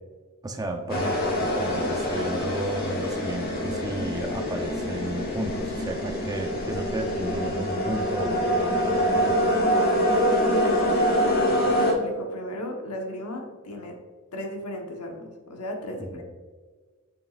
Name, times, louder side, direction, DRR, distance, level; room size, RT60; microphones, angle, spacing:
voice 1, 0.4-9.4 16.0-16.2, right 1 dB, 15° right, 3 dB, 0.7 m, -33 dB
sound 1, 0.9-11.9, equal, 45° left, 1.6 m, -25 dB
voice 2, 9.7-10.3 10.6-11.3 11.8-14.0 14.3-16.2, left 1 dB, 85° left, 2 dB, 1.2 m, -35 dB
6.9 x 6.0 x 2.5 m, 1.4 s
head